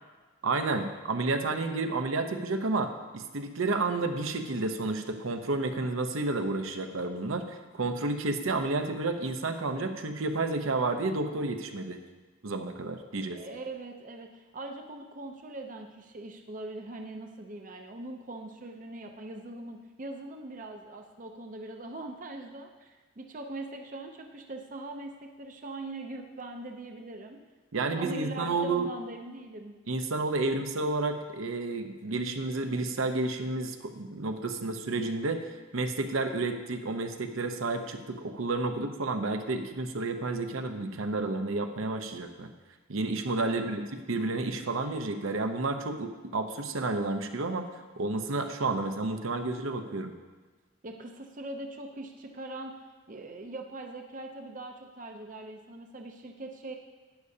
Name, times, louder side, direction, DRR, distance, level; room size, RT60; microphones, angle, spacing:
voice 1, 0.4-12.0 12.4-13.4 27.7-28.9 29.9-35.5 35.7-42.5 42.9-43.8 44.1-47.6 48.0-50.1, right 3 dB, 85° right, 7 dB, 0.8 m, -31 dB
voice 2, 13.3-27.4 27.9-29.7 43.5-43.8 50.8-56.8, right 2 dB, 40° right, 3 dB, 0.6 m, -41 dB
11.5 x 9.7 x 2.8 m, 1.3 s
head